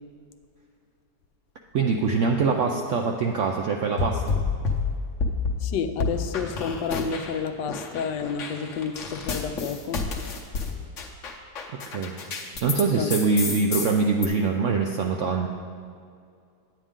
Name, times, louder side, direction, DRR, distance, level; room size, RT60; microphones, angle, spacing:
voice 1, 1.7-4.3 11.9-12.2 12.6-15.5, right 4 dB, 75° right, 2 dB, 0.7 m, -24 dB
sound 1, 4.0-5.6 6.0-7.4 7.7-12.8 13.1-14.3, left 4 dB, 55° left, 1.1 m, -29 dB
voice 2, 5.6-10.0 12.9-13.1, left 6 dB, 85° left, 9 dB, 1.2 m, -30 dB
9.9 x 8.9 x 3.7 m, 2.2 s
omnidirectional pair, 1.8 m